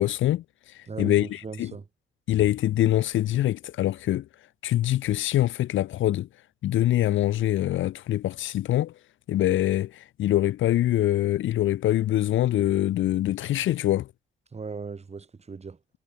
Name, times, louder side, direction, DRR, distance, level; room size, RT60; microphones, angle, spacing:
voice 1, 0.0-1.7 2.3-4.3 4.6-6.3 6.6-8.9 9.3-14.1, left 13 dB, 80° left, 1.5 m, -24 dB
voice 2, 0.9-1.9 14.5-15.8, right 4 dB, 30° right, 6.9 m, -38 dB
cardioid pair, 90°, 20 cm